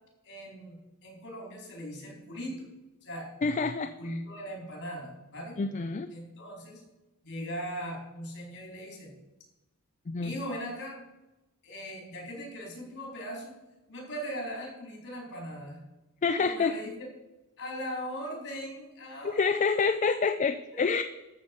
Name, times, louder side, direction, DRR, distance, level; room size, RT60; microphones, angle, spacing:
voice 1, 0.2-2.7 3.0-3.3 4.0-5.6 6.1-6.8 7.2-9.1 10.2-11.0 11.6-13.5 13.9-15.8 16.4-17.1 17.6-19.9 20.7-21.0, equal, 55° left, 0 dB, 4.4 m, -39 dB
voice 2, 3.4-4.2 5.6-6.1 10.1-10.3 16.2-16.8 19.2-21.0, left 4 dB, 35° left, 9 dB, 0.4 m, -27 dB
13.5 x 7.1 x 5.4 m, 1.0 s
head